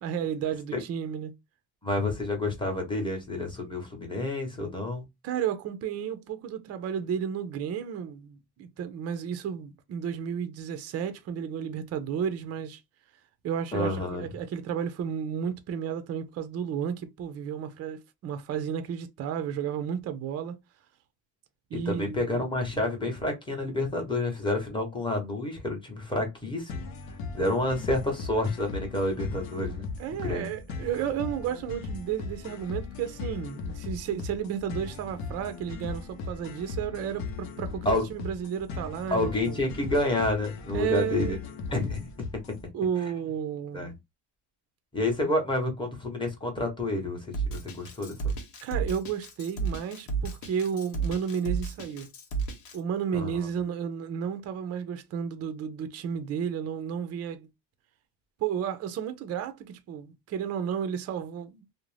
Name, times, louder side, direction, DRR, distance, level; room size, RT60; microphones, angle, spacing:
voice 1, 0.0-1.3 5.2-12.8 13.4-20.6 21.7-22.2 30.0-39.6 40.7-41.4 42.7-43.9 48.6-52.1 52.7-57.5 58.4-61.6, right 8 dB, 35° right, 0.4 m, -32 dB
voice 2, 1.8-5.0 13.7-14.3 21.9-26.9 27.3-29.9 30.1-30.5 37.8-38.1 39.1-41.4 41.7-42.1 43.7-43.9 44.9-48.3 53.1-53.5, left 2 dB, 10° left, 0.8 m, -29 dB
sound 1, 26.7-42.7, left 4 dB, 65° left, 0.8 m, -38 dB
Drum kit, 47.3-52.8, right 5 dB, 85° left, 1.1 m, -32 dB
2.5 x 2.0 x 3.2 m
cardioid pair, 135°, 48 cm